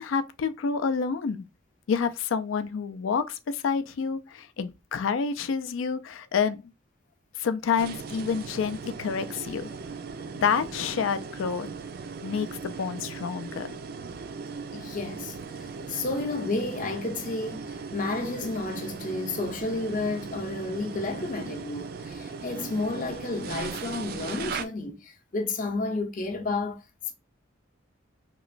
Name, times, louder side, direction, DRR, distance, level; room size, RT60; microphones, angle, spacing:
voice 1, 0.0-1.4 1.9-6.7 7.4-9.7 10.4-11.7 12.2-13.7, left 6 dB, 85° left, 0.4 m, -28 dB
sound 1, 7.8-24.6, right 5 dB, 50° right, 0.3 m, -38 dB
voice 2, 14.7-26.8, left 3 dB, 45° left, 0.6 m, -31 dB
3.0 x 2.9 x 2.4 m
head